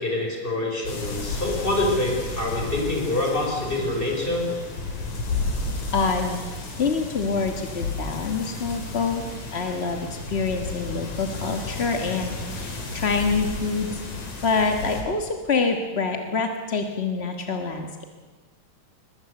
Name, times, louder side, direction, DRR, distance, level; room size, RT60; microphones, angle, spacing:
voice 1, 0.0-4.5, left 2 dB, 15° left, 0 dB, 5.4 m, -26 dB
sound 1, 0.8-15.0, left 3 dB, 70° left, 4.9 m, -33 dB
voice 2, 5.9-6.4 6.8-9.2 9.5-14.0 14.4-18.0, left 4 dB, 40° left, 5 dB, 0.9 m, -26 dB
21.5 x 21.0 x 8.0 m, 1.3 s
omnidirectional pair, 3.3 m